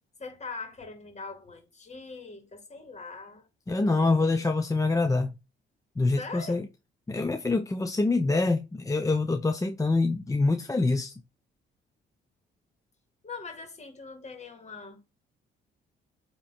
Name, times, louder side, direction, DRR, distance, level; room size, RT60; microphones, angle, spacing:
voice 1, 0.2-3.5 3.8-4.3 6.1-6.7 13.2-15.2, left 4 dB, 35° left, 2.1 m, -42 dB
voice 2, 3.7-5.4 6.0-6.6 7.1-11.1, left 3 dB, 15° left, 0.6 m, -25 dB
8.3 x 3.1 x 4.2 m
cardioid pair, 90°, 20 cm